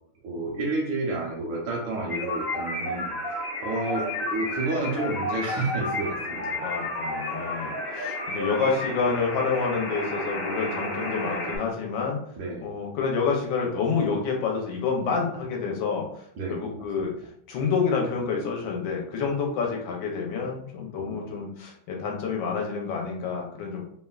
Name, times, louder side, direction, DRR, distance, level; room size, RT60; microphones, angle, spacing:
voice 1, 0.2-6.5 12.4-12.7 16.4-16.8 21.0-21.4, right 2 dB, 75° right, -2 dB, 1.1 m, -30 dB
sound 1, 2.1-11.6, left 1 dB, 50° left, 1.1 m, -31 dB
voice 2, 6.6-12.2 12.6-16.2 16.5-17.1 17.5-23.8, left 5 dB, 75° left, 0 dB, 1.4 m, -28 dB
3.4 x 2.1 x 2.3 m, 0.67 s
omnidirectional pair, 2.3 m